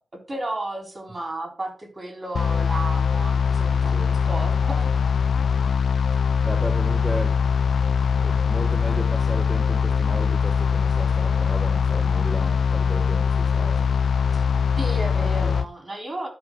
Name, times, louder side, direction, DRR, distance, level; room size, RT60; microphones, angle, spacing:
voice 1, 0.1-4.9 14.3-14.4 14.8-16.3, right 1 dB, 35° right, 2 dB, 4.0 m, -33 dB
sound 1, 2.4-15.7, left 6 dB, 75° left, 0.6 m, -22 dB
voice 2, 6.4-7.4 8.2-13.9 15.1-15.6, right 1 dB, 10° right, 2 dB, 1.3 m, -34 dB
12.5 x 5.5 x 3.8 m, 0.36 s
cardioid pair, 80°, 0 cm